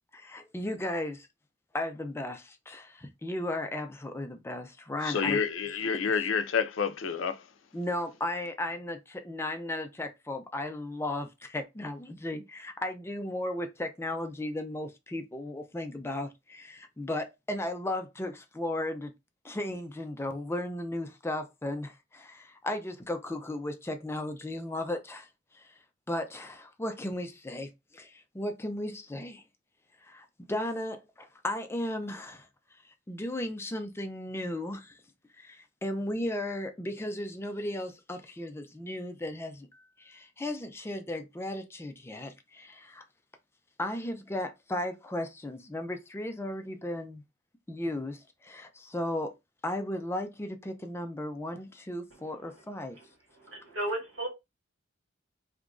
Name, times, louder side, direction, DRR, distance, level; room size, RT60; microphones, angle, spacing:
voice 1, 0.1-1.3 1.7-5.4 7.7-19.1 19.4-25.7 26.1-29.4 30.0-35.0 35.4-43.1 43.8-47.2 47.7-49.3 49.6-53.0, left 1 dB, 15° left, 0.4 m, -35 dB
voice 2, 5.0-7.5, left 6 dB, 75° left, 0.5 m, -29 dB
voice 3, 53.3-54.3, right 1 dB, 70° right, 1.9 m, -35 dB
3.0 x 2.4 x 3.6 m
head